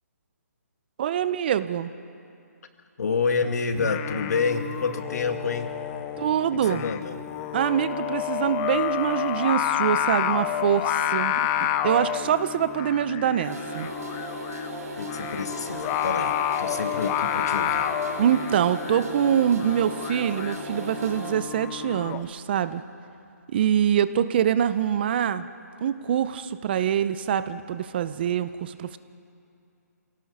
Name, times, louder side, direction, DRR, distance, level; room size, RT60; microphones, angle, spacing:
voice 1, 1.0-1.9 6.2-6.8 7.5-11.4 11.8-13.9 18.2-22.8 23.5-25.5 25.8-29.0, right 9 dB, 35° right, 14 dB, 0.6 m, -24 dB
voice 2, 3.0-5.7 6.5-7.2 15.0-17.9, left 4 dB, 65° left, 7 dB, 1.9 m, -28 dB
Singing, 3.7-22.2, left 11 dB, 20° left, 0.6 m, -30 dB
sound 1, 13.4-21.3, right 2 dB, 65° right, 4.2 m, -37 dB
27.5 x 18.0 x 5.5 m, 2.5 s
hypercardioid pair, 160°, 9 cm